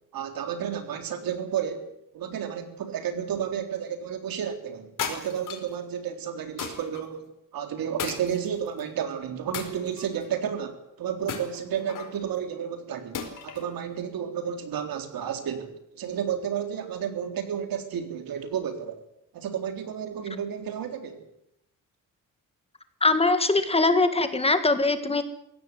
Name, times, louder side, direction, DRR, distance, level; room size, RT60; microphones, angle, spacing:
voice 1, 0.1-7.3 7.5-15.7 15.9-19.0 19.3-21.2, right 8 dB, 85° right, 6 dB, 3.8 m, -32 dB
sound 1, 5.0-5.7 6.6-7.0 8.0-8.8 9.5-10.3 11.3-12.2 13.1-13.7, left 7 dB, 65° left, 4.8 m, -35 dB
voice 2, 23.0-25.2, left 3 dB, 15° left, 9 dB, 1.8 m, -22 dB
22.5 x 17.0 x 9.4 m, 0.79 s
wide cardioid pair, 170°, 34 cm